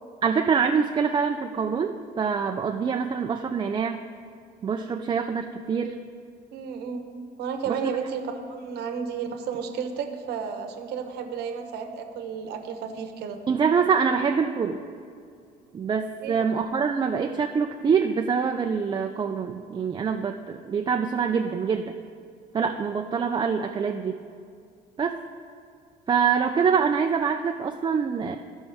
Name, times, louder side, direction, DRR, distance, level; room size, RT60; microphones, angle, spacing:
voice 1, 0.2-4.0 4.6-6.0 7.7-8.0 13.5-14.8 15.7-21.9 22.5-24.2 25.0-25.2 26.1-28.4, right 6 dB, 25° right, 4 dB, 0.4 m, -25 dB
voice 2, 6.5-7.1 7.4-13.4 16.2-16.5, right 6 dB, 75° right, 5 dB, 1.0 m, -32 dB
15.0 x 5.3 x 3.5 m, 2.3 s
cardioid pair, 110°, 17 cm